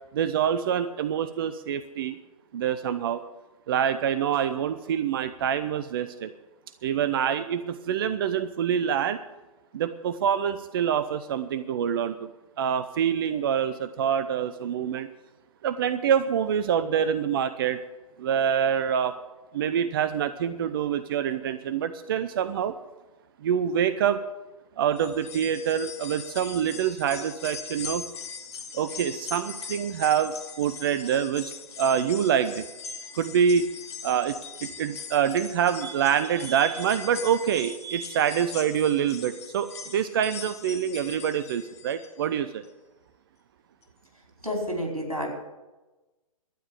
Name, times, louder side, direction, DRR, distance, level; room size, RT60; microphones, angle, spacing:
voice 1, 0.1-2.2 2.5-3.2 3.7-6.3 6.8-9.2 9.7-12.3 12.6-15.1 15.6-17.8 18.2-19.2 19.5-22.8 23.4-24.2 24.8-28.0 28.7-31.5 31.8-33.7 34.0-42.6, right 8 dB, 40° right, 12 dB, 0.6 m, -26 dB
sound 1, 24.9-42.2 42.6-42.7 43.8-43.9, left 5 dB, 50° left, 1.8 m, -41 dB
voice 2, 44.4-45.3, equal, 90° right, 1 dB, 4.7 m, -29 dB
12.5 x 9.5 x 8.3 m, 1.1 s
figure-of-eight pair, 120°, 18 cm